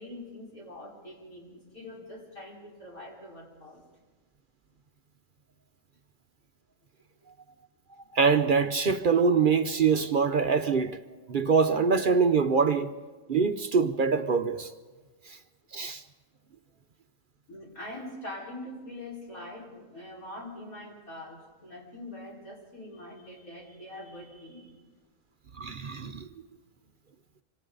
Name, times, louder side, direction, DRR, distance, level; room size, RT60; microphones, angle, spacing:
voice 1, 0.0-3.8 7.2-7.3 17.5-24.7, left 1 dB, 90° left, 5.2 m, -43 dB
voice 2, 8.1-11.0 11.3-12.9 13.3-14.7 15.7-16.0 25.6-26.3, right 5 dB, 50° right, 0.7 m, -24 dB
26.0 x 25.5 x 3.9 m
omnidirectional pair, 1.4 m